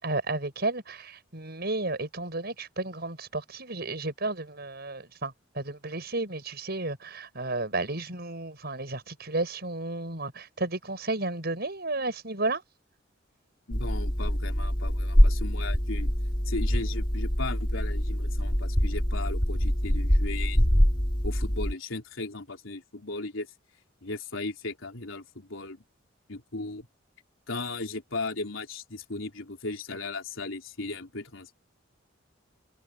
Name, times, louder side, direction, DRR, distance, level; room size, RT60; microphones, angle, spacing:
voice 1, 0.0-12.6, right 2 dB, 55° right, 6.4 m, -32 dB
voice 2, 13.7-16.1 16.5-20.7 21.2-23.5 24.0-25.8 26.3-26.9 27.5-31.5, left 3 dB, 85° left, 3.7 m, -36 dB
sound 1, 13.7-21.7, equal, 25° left, 2.3 m, -25 dB
head